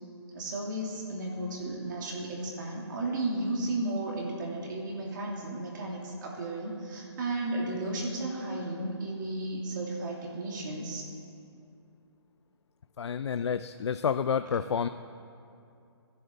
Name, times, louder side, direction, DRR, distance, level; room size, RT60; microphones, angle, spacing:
voice 1, 0.3-11.0, right 2 dB, 45° right, -2 dB, 2.9 m, -34 dB
voice 2, 13.0-14.9, left 7 dB, 75° left, 11 dB, 0.5 m, -29 dB
13.5 x 10.5 x 7.0 m, 2.6 s
hypercardioid pair, 160°, 14 cm